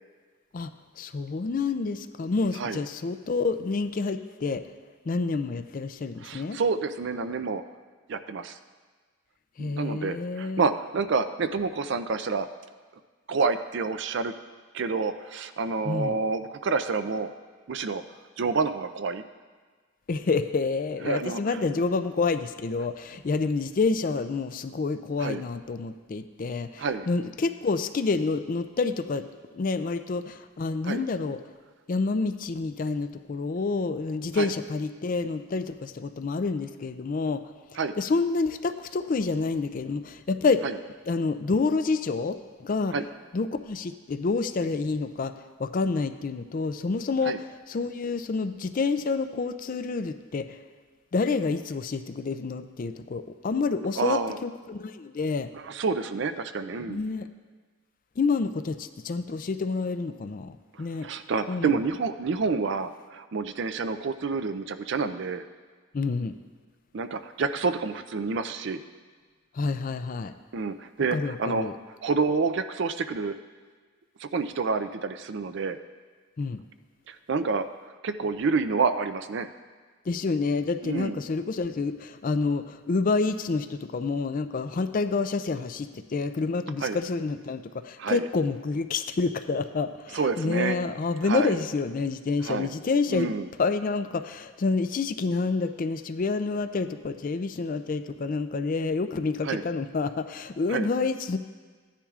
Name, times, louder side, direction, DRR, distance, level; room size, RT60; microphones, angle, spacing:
voice 1, 1.0-4.6 5.1-6.6 9.6-10.6 15.8-16.1 20.1-29.3 29.5-31.4 31.9-37.4 38.0-40.6 41.1-42.4 42.6-42.9 43.3-45.3 45.6-50.6 51.1-55.5 56.9-57.3 58.2-61.1 61.5-61.7 65.9-66.4 69.5-70.3 71.1-71.8 76.4-76.6 80.1-93.3 93.6-101.4, left 4 dB, 40° left, 10 dB, 0.4 m, -28 dB
voice 2, 6.2-7.6 8.1-8.6 9.6-12.5 13.3-14.3 14.7-17.3 17.7-18.0 18.4-19.2 21.0-21.6 25.2-25.4 26.8-27.1 30.8-31.0 34.3-34.5 37.8-37.9 40.6-40.7 42.9-43.1 47.2-47.4 54.0-54.4 55.5-57.0 61.0-65.4 66.9-68.8 70.5-71.7 72.0-73.4 74.2-75.8 77.1-77.7 78.0-79.5 80.8-81.2 86.8-87.0 88.0-88.3 90.1-90.8 91.2-91.6 92.4-92.7 93.1-93.5 99.4-99.6 100.7-100.9, right 4 dB, 55° right, 10 dB, 0.4 m, -28 dB
15.0 x 10.0 x 2.4 m, 1.5 s
head